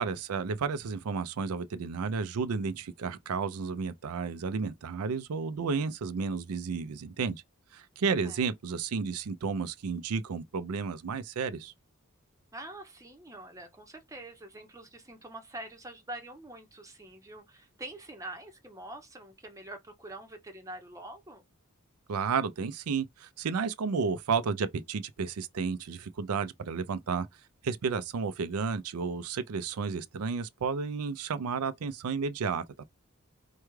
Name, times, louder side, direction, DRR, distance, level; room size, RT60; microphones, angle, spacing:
voice 1, 0.0-7.4 7.7-11.7 22.1-27.3 27.6-32.8, right 5 dB, 90° right, 0.5 m, -32 dB
voice 2, 12.5-21.4, right 1 dB, 15° right, 0.8 m, -45 dB
4.5 x 2.3 x 3.1 m
head